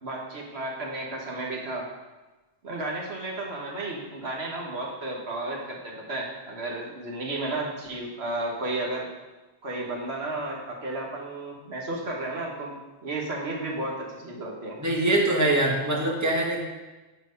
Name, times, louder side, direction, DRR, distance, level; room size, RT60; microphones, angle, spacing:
voice 1, 0.0-1.9 2.6-9.1 9.6-12.8 13.0-14.8, right 2 dB, 90° right, -2 dB, 1.7 m, -33 dB
voice 2, 14.8-16.6, right 1 dB, 15° right, -2 dB, 1.5 m, -23 dB
11.0 x 4.5 x 5.3 m, 1.2 s
omnidirectional pair, 1.1 m